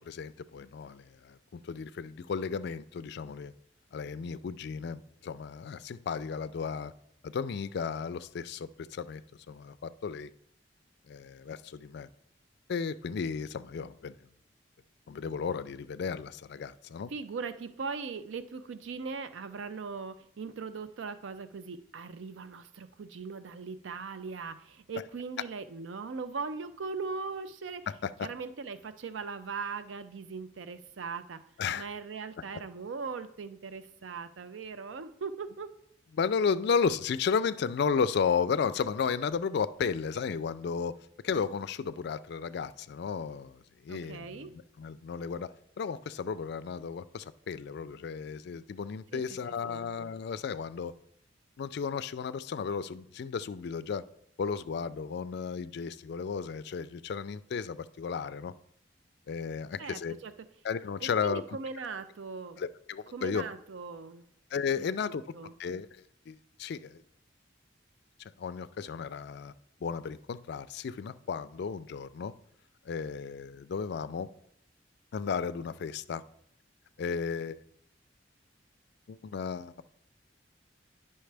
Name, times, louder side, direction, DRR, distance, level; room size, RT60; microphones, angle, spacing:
voice 1, 0.0-3.5 3.9-6.9 7.2-9.2 9.5-10.3 11.1-12.1 12.7-14.2 15.1-17.1 27.9-28.3 31.6-31.9 36.1-41.0 41.2-45.5 45.8-50.9 51.6-54.1 54.4-58.5 59.3-60.2 60.6-61.4 62.6-63.5 64.5-65.2 65.6-67.0 68.4-69.5 69.8-72.3 72.9-74.3 75.1-76.2 77.0-77.6 79.1-79.8, left 6 dB, 60° left, 0.4 m, -34 dB
voice 2, 17.1-27.9 28.2-31.4 31.7-35.7 43.9-44.5 49.1-49.2 49.7-49.8 59.8-60.3 61.0-62.6 63.1-64.2 64.8-65.5, right 4 dB, 85° right, 0.5 m, -39 dB
10.5 x 5.5 x 3.3 m
head